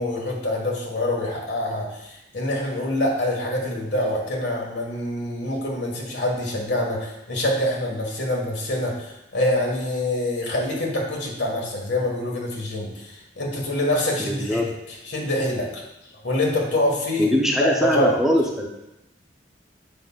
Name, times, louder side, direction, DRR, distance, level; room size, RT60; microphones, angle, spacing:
voice 1, 0.0-15.8 16.2-17.3 17.6-18.2, left 1 dB, 75° left, -1 dB, 1.5 m, -25 dB
voice 2, 14.2-14.7 17.2-18.7, equal, ahead, -1 dB, 0.5 m, -22 dB
7.8 x 5.6 x 2.3 m, 0.89 s
head